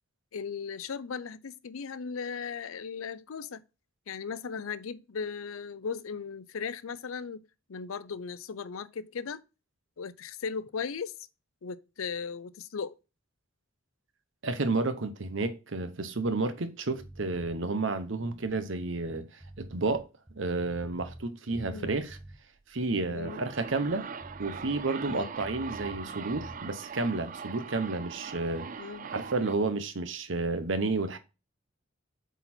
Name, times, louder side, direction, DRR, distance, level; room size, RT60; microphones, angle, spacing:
voice 1, 0.3-3.6 4.1-7.4 7.7-9.4 10.0-11.1 11.6-13.0 21.7-21.9 23.1-23.4 25.1-25.3 28.8-29.1, left 6 dB, 85° left, 0.5 m, -37 dB
voice 2, 14.4-19.3 19.6-20.1 20.3-22.2 22.7-24.0 24.4-28.7 29.1-31.2, right 3 dB, 65° right, 0.9 m, -31 dB
sound 1, 17.0-17.6 18.1-21.3 21.5-22.4 22.9-26.1 26.3-26.6, right 1 dB, 5° right, 1.0 m, -48 dB
sound 2, 23.2-29.5, right 6 dB, 40° right, 0.4 m, -41 dB
8.1 x 4.2 x 4.3 m
head